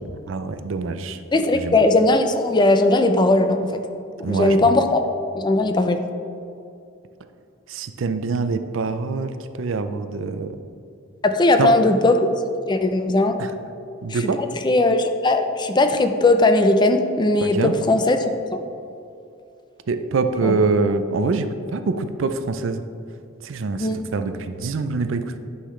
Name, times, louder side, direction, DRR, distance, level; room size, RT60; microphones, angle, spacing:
voice 1, 0.3-1.2 1.5-1.8 4.2-4.7 7.7-10.6 11.6-11.7 13.4-13.5 14.0-14.4 17.4-17.7 19.9-22.8 23.4-25.4, right 4 dB, 75° right, 9 dB, 0.5 m, -24 dB
voice 2, 1.3-3.6 4.3-5.0 5.3-6.0 11.3-12.2 12.7-13.3 14.1-18.2 18.5-18.6 20.4-20.6 23.8-24.0, left 2 dB, 25° left, 7 dB, 0.5 m, -18 dB
10.0 x 5.7 x 3.2 m, 2.6 s
head